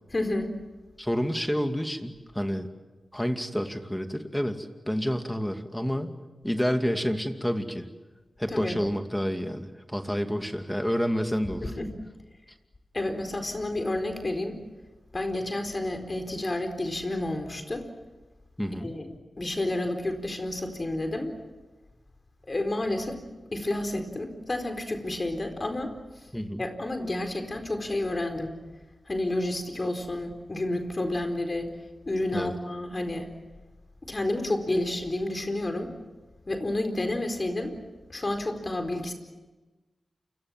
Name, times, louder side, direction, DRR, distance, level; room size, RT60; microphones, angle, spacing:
voice 1, 0.1-0.5 8.5-8.7 11.6-11.9 12.9-14.6 15.1-17.9 18.8-21.3 22.5-25.9 26.6-28.6 29.1-31.7 32.1-33.3 34.0-35.9 36.5-37.7 38.1-39.1, left 1 dB, 40° left, 6 dB, 4.3 m, -30 dB
voice 2, 1.0-2.7 3.1-6.2 6.4-7.9 8.4-11.6 18.6-18.9 26.3-26.6 32.3-32.5, equal, 5° left, 6 dB, 2.4 m, -29 dB
28.5 x 24.0 x 7.5 m, 1.2 s
cardioid pair, 50°, 0 cm